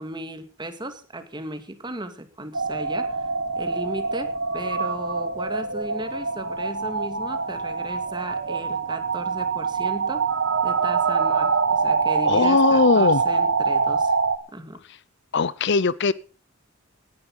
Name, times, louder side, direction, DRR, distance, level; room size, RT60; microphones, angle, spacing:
voice 1, 0.0-3.3 3.6-10.3 10.6-14.2 14.5-14.8, right 1 dB, 20° right, 2.2 m, -36 dB
sound 1, 2.5-14.4, right 4 dB, 65° right, 1.4 m, -24 dB
voice 2, 12.3-13.2 15.3-16.1, left 4 dB, 55° left, 0.6 m, -19 dB
18.5 x 11.0 x 5.5 m
head